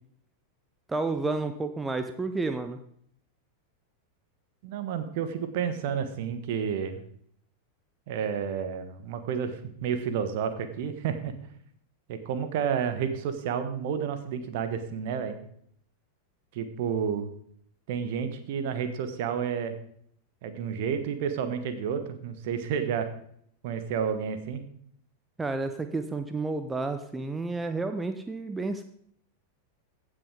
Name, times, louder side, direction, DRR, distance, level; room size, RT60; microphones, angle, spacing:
voice 1, 0.9-2.8 25.4-28.8, right 3 dB, 10° right, 8 dB, 0.7 m, -31 dB
voice 2, 4.6-7.0 8.1-11.3 12.1-15.4 16.5-17.3 17.9-19.8 20.4-23.1 23.6-24.6, right 7 dB, 50° right, 9 dB, 1.3 m, -30 dB
15.5 x 6.4 x 5.0 m, 0.66 s
figure-of-eight pair, 90°, 0 cm